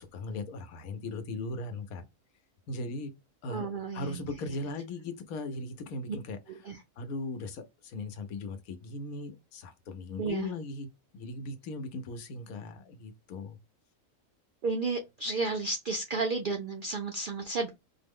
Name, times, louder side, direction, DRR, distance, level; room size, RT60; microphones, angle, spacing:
voice 1, 0.0-2.0 2.7-3.1 3.4-6.4 6.6-10.9 11.1-13.6, left 2 dB, 90° left, 1.2 m, -38 dB
voice 2, 3.5-4.6 6.1-6.2 6.5-6.8 10.2-10.5 14.6-17.7, right 3 dB, 75° right, 0.4 m, -33 dB
4.4 x 2.0 x 3.5 m
omnidirectional pair, 1.5 m